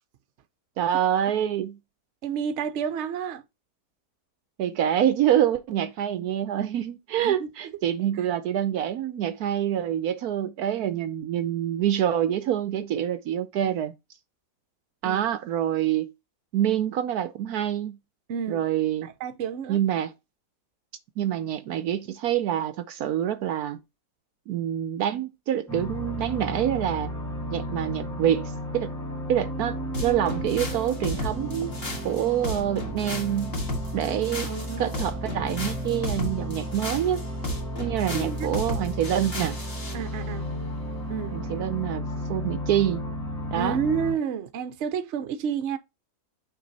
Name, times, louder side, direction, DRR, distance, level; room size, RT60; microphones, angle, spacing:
voice 1, 0.8-1.8 4.6-13.9 15.0-16.1 16.5-18.0 18.5-19.1 19.7-20.1 21.2-23.8 24.5-27.1 27.5-28.9 29.3-31.7 32.0-33.6 33.9-34.5 34.8-37.2 37.8-39.6 41.3-43.0 43.5-43.8, right 11 dB, 75° right, 1.1 m, -26 dB
voice 2, 2.2-3.4 7.2-7.5 15.0-15.3 18.3-18.6 19.0-19.8 34.4-34.9 38.1-38.5 39.9-40.4 41.1-41.4 43.6-45.8, right 7 dB, 55° right, 0.9 m, -30 dB
sound 1, 25.7-44.1, equal, ahead, 2.0 m, -33 dB
sound 2, 29.9-40.0, left 1 dB, 40° left, 1.8 m, -34 dB
6.1 x 4.6 x 4.0 m
omnidirectional pair, 1.8 m